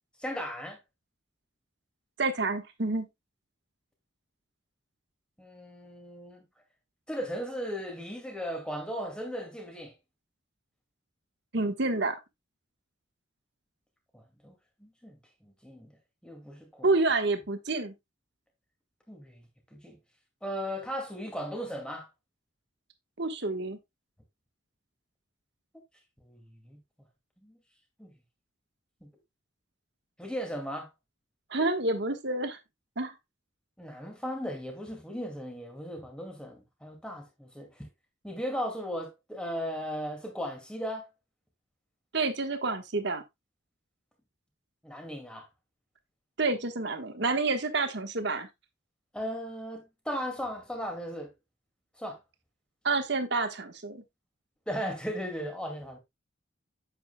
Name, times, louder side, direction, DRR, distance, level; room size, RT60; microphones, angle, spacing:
voice 1, 0.2-0.8 5.4-6.4 7.1-9.9 14.1-14.5 14.8-15.9 16.2-16.9 19.1-19.4 19.7-20.0 20.4-22.1 26.2-26.8 27.4-27.6 28.0-28.1 29.0-29.1 30.2-30.9 33.8-37.9 38.2-41.1 44.8-45.5 49.1-51.3 52.0-52.2 54.7-56.0, equal, 5° left, 2.2 m, -37 dB
voice 2, 2.2-3.1 11.5-12.2 16.8-17.9 23.2-23.8 31.5-32.6 33.0-33.1 42.1-43.2 46.4-48.5 52.8-54.0, right 3 dB, 55° right, 1.3 m, -28 dB
9.1 x 7.9 x 2.2 m
head